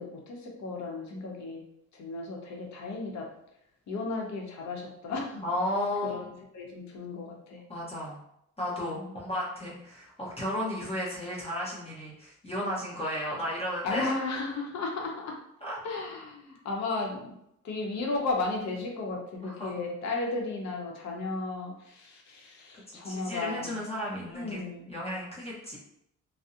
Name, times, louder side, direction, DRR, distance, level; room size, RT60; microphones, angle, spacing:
voice 1, 0.0-1.6 1.9-3.3 3.9-5.4 6.0-7.6 9.0-9.1 13.8-15.4 15.8-17.3 17.6-23.8 24.3-24.9, left 3 dB, 65° left, 0 dB, 0.7 m, -34 dB
voice 2, 5.4-6.2 7.7-8.2 8.6-14.1 15.6-15.8 19.4-19.8 23.0-24.6 24.9-25.8, left 1 dB, 20° left, -5 dB, 0.7 m, -34 dB
2.6 x 2.0 x 2.4 m, 0.76 s
cardioid pair, 90°, 30 cm